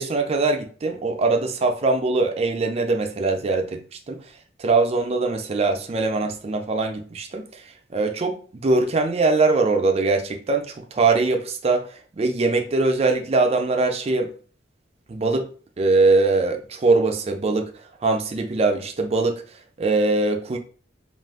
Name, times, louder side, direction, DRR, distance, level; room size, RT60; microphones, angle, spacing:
voice 1, 0.0-4.2 4.6-7.6 7.9-8.4 8.6-11.8 12.2-14.3 15.1-15.5 15.8-17.7 18.0-19.4 19.8-20.6, right 3 dB, 35° right, 0.4 m, -22 dB
2.5 x 2.3 x 3.4 m
head